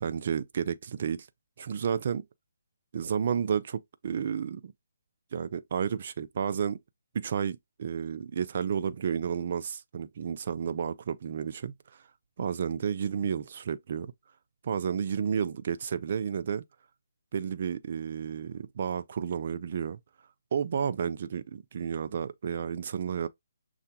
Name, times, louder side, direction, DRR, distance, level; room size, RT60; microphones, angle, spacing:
voice 1, 0.0-1.3 1.6-2.3 2.9-4.7 5.3-6.8 7.1-11.7 12.4-14.1 14.6-16.6 17.3-20.0 20.5-23.3, right 7 dB, 45° right, 0.4 m, -31 dB
6.6 x 2.4 x 2.8 m
hypercardioid pair, 160°, 0 cm